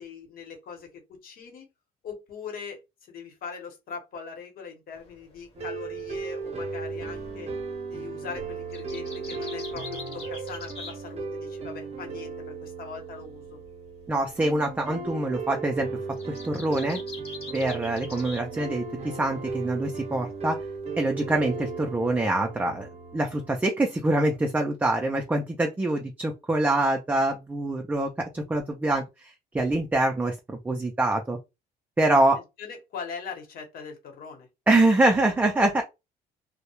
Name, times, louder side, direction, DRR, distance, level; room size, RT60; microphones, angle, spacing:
voice 1, 0.0-1.7 2.0-7.5 7.9-13.6 32.3-34.5, left 6 dB, 60° left, 1.0 m, -41 dB
sound 1, 4.9-11.6 11.9-18.5 18.7-19.4 19.8-21.2, left 3 dB, 35° left, 0.9 m, -45 dB
sound 2, 5.5-23.6, right 4 dB, 40° right, 0.7 m, -36 dB
voice 2, 14.1-15.9 16.3-17.0 17.5-20.6 21.0-31.4 32.0-32.4 34.7-35.8, right 2 dB, 10° right, 0.4 m, -25 dB
2.2 x 2.0 x 2.9 m
cardioid pair, 110°, 17 cm